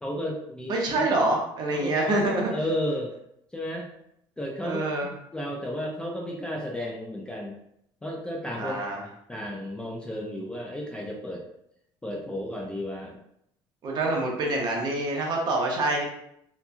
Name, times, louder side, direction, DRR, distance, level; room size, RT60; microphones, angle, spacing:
voice 1, 0.0-1.2 1.7-2.1 2.5-3.1 3.5-3.9 4.4-7.6 8.0-8.9 9.3-11.4 12.0-13.2, equal, 10° left, -1 dB, 0.3 m, -33 dB
voice 2, 0.7-2.5 4.6-5.1 8.6-9.0 13.8-16.0, right 2 dB, 45° right, -1 dB, 0.7 m, -26 dB
2.9 x 2.5 x 2.3 m, 0.75 s
cardioid pair, 145°, 10 cm